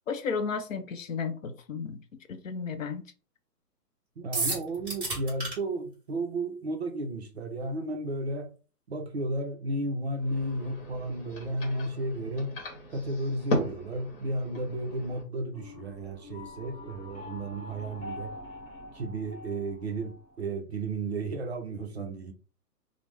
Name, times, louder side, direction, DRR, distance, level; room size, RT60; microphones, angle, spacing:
voice 1, 0.1-2.0 2.3-3.0, left 5 dB, 55° left, 0.6 m, -33 dB
voice 2, 4.2-8.5 8.9-12.5 12.9-18.3 18.9-22.3, right 2 dB, 45° right, 0.5 m, -33 dB
sound 1, 4.3-5.5, right 3 dB, 10° right, 0.9 m, -30 dB
sound 2, 10.2-15.2, equal, 35° left, 1.0 m, -37 dB
sound 3, 15.5-20.5, left 2 dB, 5° left, 0.6 m, -45 dB
3.2 x 2.0 x 3.2 m
hypercardioid pair, 150°, 49 cm